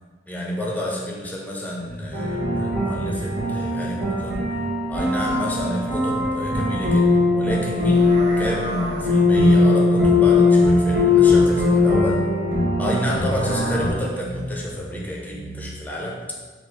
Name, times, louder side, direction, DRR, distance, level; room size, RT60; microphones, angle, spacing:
voice 1, 0.3-4.4 4.9-7.1 7.3-12.2 12.8-16.2, left 1 dB, 10° left, -3 dB, 0.6 m, -30 dB
sound 1, 1.8-8.3 8.6-8.7 9.0-13.6 14.1-15.7, right 1 dB, 85° right, 0.8 m, -36 dB
sound 2, 2.1-13.9, left 3 dB, 60° right, 1.1 m, -19 dB
4.2 x 2.4 x 4.0 m, 1.4 s
head